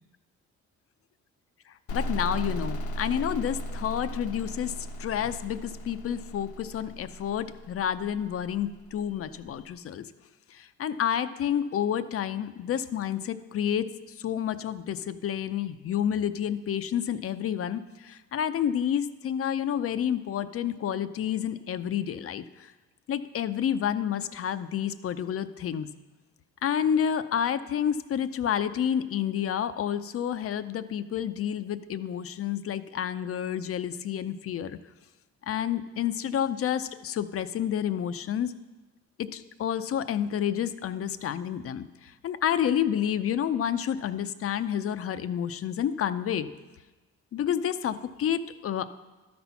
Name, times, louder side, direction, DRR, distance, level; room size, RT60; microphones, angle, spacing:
sound 1, 1.9-9.4, equal, 80° left, 0.8 m, -37 dB
voice 1, 1.9-10.0 10.5-13.9 14.2-22.7 23.1-25.9 26.6-34.8 35.4-38.5 39.2-46.5 47.3-48.8, left 9 dB, 50° left, 13 dB, 0.5 m, -29 dB
12.5 x 4.3 x 5.7 m, 1.2 s
cardioid pair, 90°, 30 cm